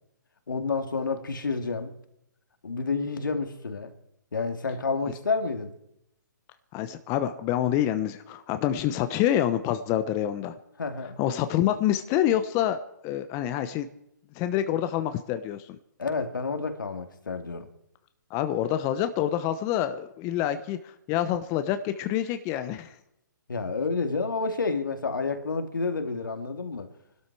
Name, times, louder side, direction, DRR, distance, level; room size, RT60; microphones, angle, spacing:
voice 1, 0.5-1.9 2.6-3.9 4.3-5.7 10.8-11.2 16.0-17.7 23.5-26.9, left 4 dB, 80° left, 2.4 m, -29 dB
voice 2, 6.7-10.5 11.2-12.8 13.0-13.9 14.4-15.8 18.3-20.8 21.1-22.9, left 11 dB, 25° left, 1.0 m, -27 dB
24.0 x 12.5 x 4.8 m
hypercardioid pair, 135°, 11 cm